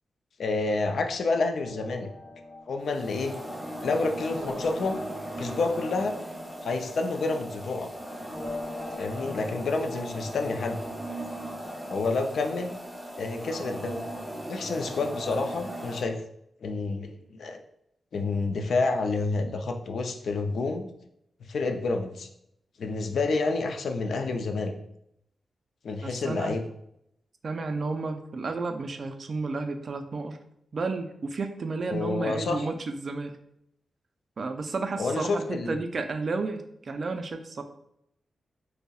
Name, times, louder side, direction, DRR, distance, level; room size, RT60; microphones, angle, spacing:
voice 1, 0.4-2.1 2.7-3.4 3.8-6.2 6.6-7.9 9.0-10.8 11.9-12.8 13.2-14.0 14.5-16.2 16.6-17.6 18.1-20.9 21.5-22.3 22.8-24.7 25.8-26.6 31.9-32.7 35.0-35.8, left 3 dB, 75° left, 5 dB, 0.4 m, -29 dB
sound 1, 1.5-11.7, left 1 dB, 35° left, 0.7 m, -44 dB
sound 2, 2.8-16.0, right 1 dB, ahead, 0.6 m, -38 dB
voice 2, 26.0-26.5 27.4-30.4 30.7-33.4 34.4-37.6, right 3 dB, 50° right, 7 dB, 0.4 m, -32 dB
5.3 x 2.0 x 2.3 m, 0.77 s
wide cardioid pair, 120°, 0 cm